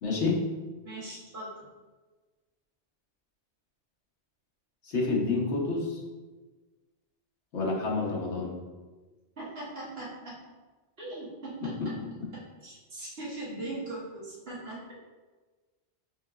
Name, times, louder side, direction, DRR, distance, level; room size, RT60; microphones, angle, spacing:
voice 1, 0.0-0.4 4.8-6.0 7.5-8.5, left 3 dB, 75° left, -3 dB, 1.3 m, -28 dB
voice 2, 0.8-1.7 9.4-10.4 11.0-12.0 12.3-14.9, right 2 dB, 60° right, -6 dB, 1.5 m, -40 dB
5.7 x 3.8 x 2.4 m, 1.3 s
omnidirectional pair, 1.2 m